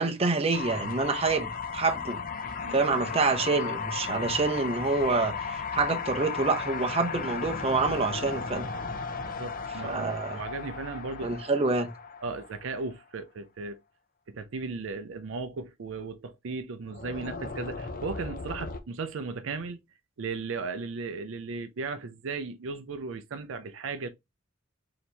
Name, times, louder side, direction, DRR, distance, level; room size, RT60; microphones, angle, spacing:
voice 1, 0.0-2.2 2.7-8.7 9.8-10.4 11.2-11.9, right 3 dB, 30° right, 0.7 m, -27 dB
sound 1, 0.5-12.8 16.9-18.8, left 5 dB, 45° left, 0.6 m, -35 dB
voice 2, 9.2-11.4 12.2-13.8 14.3-19.8 20.2-24.1, right 4 dB, 70° right, 0.5 m, -36 dB
4.2 x 2.9 x 3.2 m
head